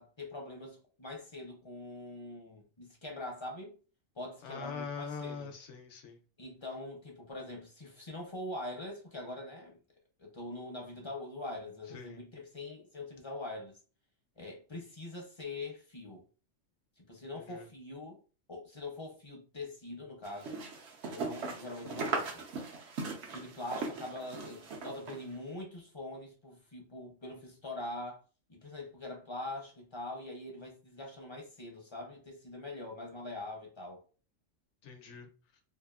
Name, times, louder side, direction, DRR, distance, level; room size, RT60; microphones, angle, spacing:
voice 1, 0.0-3.8 4.1-5.5 6.4-9.8 10.2-13.8 14.4-16.2 17.0-18.2 18.5-20.6 21.1-22.4 23.3-28.2 28.5-34.0, left 2 dB, 35° left, 0.5 m, -43 dB
voice 2, 4.4-6.2 11.9-12.2 17.3-17.7 34.8-35.3, left 5 dB, 75° left, 0.9 m, -43 dB
sound 1, 20.2-25.2, right 4 dB, 70° right, 0.9 m, -39 dB
2.8 x 2.4 x 2.3 m
omnidirectional pair, 1.3 m